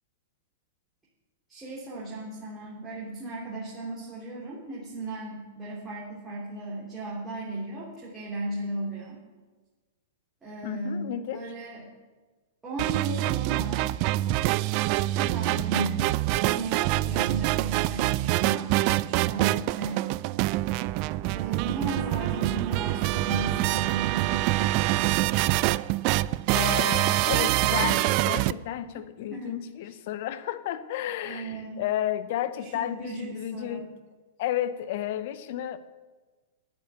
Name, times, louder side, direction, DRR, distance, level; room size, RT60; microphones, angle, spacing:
voice 1, 1.5-9.2 10.4-11.9 12.6-13.9 15.1-16.1 16.4-18.8 19.0-20.0 21.3-24.7 28.9-29.0 29.3-29.5 31.2-31.8 32.6-33.8, right 2 dB, 15° right, -6 dB, 3.0 m, -36 dB
voice 2, 10.6-11.5 26.5-33.8 34.4-35.8, left 11 dB, 50° left, 12 dB, 0.8 m, -32 dB
sound 1, 12.8-28.5, right 17 dB, 40° right, 0.3 m, -25 dB
9.5 x 9.3 x 8.0 m, 1.3 s
figure-of-eight pair, 100°, 0 cm